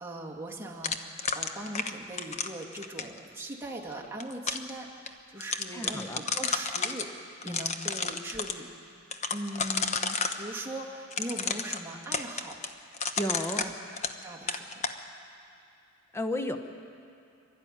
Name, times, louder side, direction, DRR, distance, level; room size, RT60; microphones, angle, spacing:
voice 1, 0.0-7.1 7.4-8.7 9.3-12.6 13.6-13.7 14.2-14.9, right 1 dB, 10° right, -1 dB, 2.1 m, -40 dB
sound 1, 0.8-3.2 4.0-4.7 5.1-5.2 5.4-7.1 7.4-8.6 9.1-10.4 11.1-14.2 14.5-15.0, left 5 dB, 35° left, 1.0 m, -31 dB
voice 2, 5.7-6.2 7.5-7.6 13.2-13.7 16.1-16.6, left 1 dB, 15° left, 7 dB, 1.0 m, -33 dB
25.0 x 13.0 x 9.9 m, 2.6 s
head